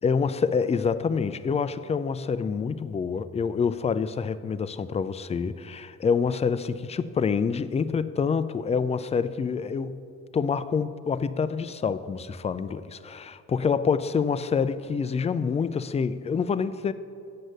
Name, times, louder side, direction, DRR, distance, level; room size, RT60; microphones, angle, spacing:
voice 1, 0.0-10.1 10.3-16.9, left 5 dB, 20° left, 13 dB, 0.4 m, -27 dB
7.9 x 7.7 x 6.5 m, 2.5 s
cardioid pair, 90°, 30 cm